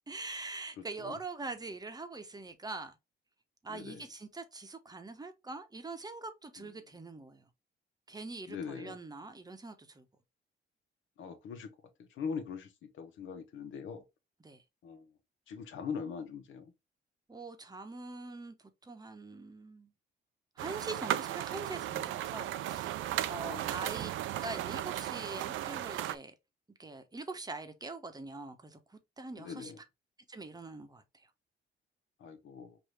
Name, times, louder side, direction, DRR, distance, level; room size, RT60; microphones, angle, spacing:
voice 1, 0.1-3.0 3.6-7.4 8.1-10.1 14.4-14.6 17.3-18.5 18.8-19.9 20.6-24.1 24.4-26.3 26.8-29.7 30.3-31.0, right 3 dB, 20° right, 0.9 m, -43 dB
voice 2, 0.8-1.2 3.7-4.0 6.6-6.7 8.5-9.0 11.2-14.0 14.8-15.1 15.5-16.7 23.4-23.7 29.4-29.8 32.2-32.8, left 6 dB, 80° left, 1.1 m, -42 dB
sound 1, 20.6-26.2, right 13 dB, 80° right, 0.4 m, -36 dB
4.7 x 2.7 x 3.3 m
cardioid pair, 90°, 20 cm